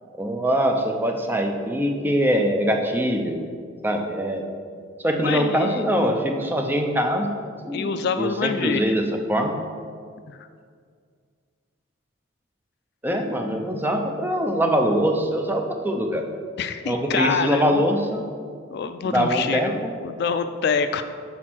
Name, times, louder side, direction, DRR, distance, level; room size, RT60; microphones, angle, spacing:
voice 1, 0.2-3.4 3.8-4.5 5.0-7.3 7.6-9.5 13.0-16.2 16.9-18.2 19.0-19.9, equal, 10° right, 3 dB, 0.5 m, -23 dB
voice 2, 5.2-5.8 7.7-8.8 10.3-10.5 16.6-17.8 18.7-21.0, left 5 dB, 55° left, 10 dB, 0.3 m, -26 dB
6.1 x 4.1 x 6.1 m, 2.1 s
head